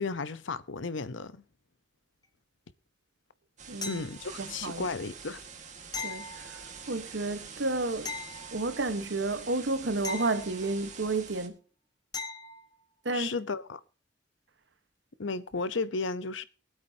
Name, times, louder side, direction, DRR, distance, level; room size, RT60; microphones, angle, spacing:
voice 1, 0.0-1.4 3.9-5.4 13.1-13.8 15.2-16.4, left 4 dB, 85° left, 0.8 m, -34 dB
sound 1, 3.6-11.5, right 6 dB, 40° right, 1.6 m, -46 dB
voice 2, 3.7-4.0 4.4-4.9 6.0-6.6 6.9-8.1 8.5-11.6 13.0-13.4, right 3 dB, 70° right, 1.2 m, -31 dB
sound 2, 3.8-4.6 5.9-7.0 8.0-9.1 10.0-11.1 12.1-12.7 15.5-15.6, left 4 dB, 20° left, 1.2 m, -40 dB
23.0 x 8.4 x 2.8 m
head